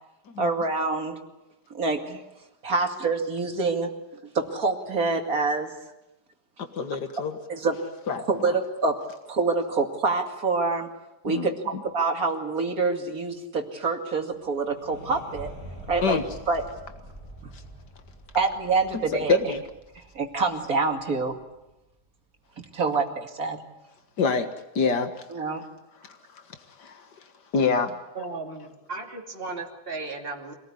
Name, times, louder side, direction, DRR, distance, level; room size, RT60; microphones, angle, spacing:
voice 1, 0.4-1.2 1.7-2.2 2.6-3.9 4.3-5.7 7.5-7.8 8.3-9.0 9.3-10.9 11.2-11.6 11.9-15.5 15.9-16.2 16.5-16.6 18.3-19.5 19.9-21.4 22.7-23.6 25.3-25.6, right 3 dB, 60° right, 4 dB, 2.9 m, -26 dB
voice 2, 6.7-7.4 8.1-8.6 11.3-11.8 16.0-16.2 17.5-17.6 19.3-19.6 24.2-24.5 24.8-25.1 26.0-26.4 26.8-27.1 27.5-27.9, left 5 dB, 90° left, 8 dB, 2.2 m, -26 dB
sound 1, 14.1-19.8, equal, 60° left, 7.6 m, -49 dB
sound 2, 15.3-21.7, right 1 dB, 5° right, 7.4 m, -46 dB
voice 3, 28.1-30.5, right 3 dB, 35° right, 0 dB, 2.9 m, -35 dB
25.5 x 18.5 x 9.9 m, 0.94 s
omnidirectional pair, 1.8 m